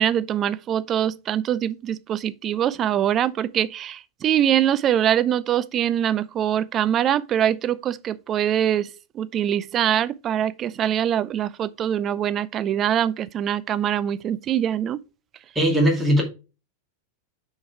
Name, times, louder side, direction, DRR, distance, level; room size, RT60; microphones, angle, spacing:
voice 1, 0.0-8.9 9.2-15.0, right 10 dB, 30° right, 0.4 m, -23 dB
voice 2, 15.5-16.2, equal, 10° right, 2.3 m, -19 dB
6.1 x 4.6 x 4.7 m
figure-of-eight pair, 90°, 0 cm